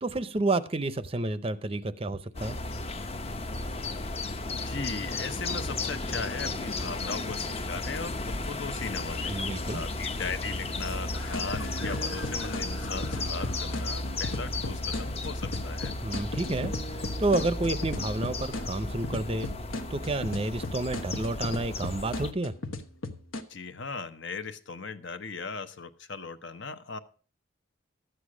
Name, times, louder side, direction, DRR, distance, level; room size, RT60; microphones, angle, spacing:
voice 1, 0.0-2.6 9.3-9.8 16.0-19.5 19.9-22.5, right 2 dB, 30° right, 14 dB, 0.6 m, -30 dB
sound 1, 2.3-22.3, left 2 dB, 30° left, 0.6 m, -34 dB
voice 2, 4.2-9.4 9.7-15.9 23.5-27.0, left 4 dB, 65° left, 10 dB, 0.9 m, -38 dB
sound 2, 11.1-23.4, left 2 dB, 90° left, 1.2 m, -37 dB
12.5 x 8.2 x 5.0 m, 0.39 s
head